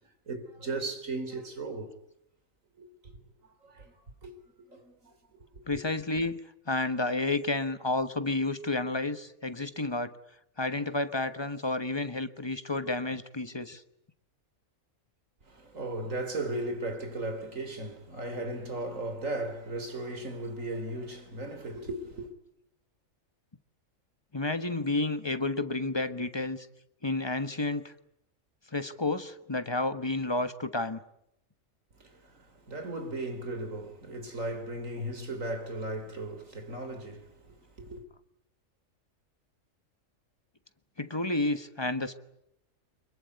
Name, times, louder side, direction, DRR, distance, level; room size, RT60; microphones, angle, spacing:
voice 1, 0.0-1.9 2.8-2.9 3.6-4.0 4.2-4.3 4.7-5.1 5.7-5.8 15.4-22.3 32.0-38.0, right 2 dB, 80° right, 3.9 m, -36 dB
voice 2, 5.7-10.1 10.6-13.8 24.3-26.7 27.0-27.9 28.7-31.0 41.0-42.1, left 2 dB, 20° left, 1.2 m, -31 dB
25.0 x 23.0 x 9.5 m
omnidirectional pair, 1.4 m